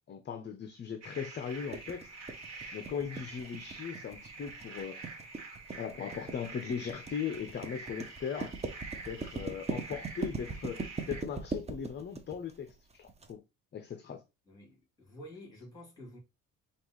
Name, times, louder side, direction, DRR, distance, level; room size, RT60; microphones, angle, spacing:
voice 1, 0.1-2.1 2.7-5.0 5.8-8.5 9.0-12.7 13.0-13.4 13.7-14.2, left 7 dB, 30° left, 0.5 m, -38 dB
sound 1, 1.0-11.2, right 3 dB, 50° right, 1.3 m, -47 dB
sound 2, 1.7-13.3, right 4 dB, 20° right, 0.6 m, -39 dB
voice 2, 14.5-16.2, equal, 10° left, 2.6 m, -50 dB
5.2 x 2.4 x 3.1 m
cardioid pair, 120°, 34 cm